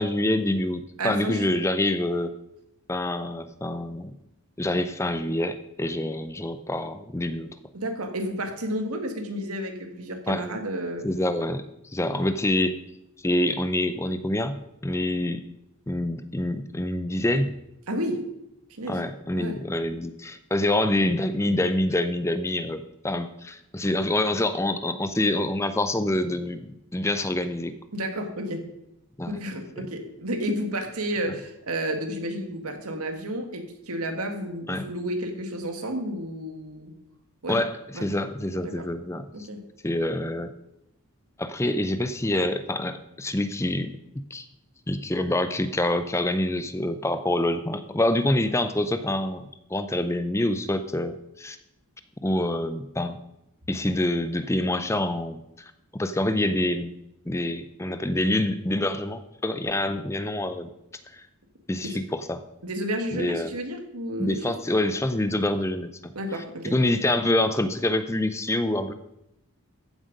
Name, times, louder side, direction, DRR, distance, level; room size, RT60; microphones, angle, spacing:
voice 1, 0.0-2.3 2.9-4.1 4.6-7.5 10.3-10.4 11.0-11.6 11.9-12.8 13.2-14.6 14.8-15.4 15.9-17.5 18.9-27.7 29.2-29.3 29.8-29.9 31.3-31.4 34.7-34.9 37.5-39.5 39.8-40.5 41.4-43.9 44.3-44.4 44.9-49.4 49.7-51.6 52.2-53.2 53.7-55.4 55.9-56.9 57.3-60.7 61.1-61.3 61.7-62.4 63.1-63.5 64.2-66.1 66.7-68.9, left 1 dB, 10° left, 11 dB, 0.5 m, -26 dB
voice 2, 1.0-1.5 7.7-11.1 12.1-12.3 17.9-18.2 18.7-19.0 19.3-19.6 27.9-28.6 29.3-36.9 37.4-37.6 37.9-38.1 38.6-38.9 39.3-39.6 61.8-62.0 62.6-64.6 66.2-66.7, equal, 85° right, 6 dB, 1.8 m, -31 dB
14.5 x 7.5 x 5.3 m, 0.85 s
head